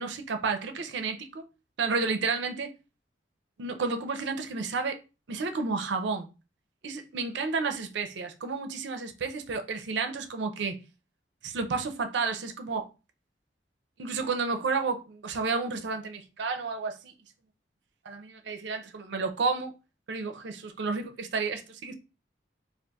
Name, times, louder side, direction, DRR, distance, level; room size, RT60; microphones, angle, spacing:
voice 1, 0.0-1.4 1.8-2.7 3.6-5.0 5.3-6.3 6.8-10.8 11.4-12.9 14.0-17.1 18.1-19.7 20.1-21.9, right 4 dB, 75° right, 0.5 m, -31 dB
4.0 x 2.4 x 2.3 m
head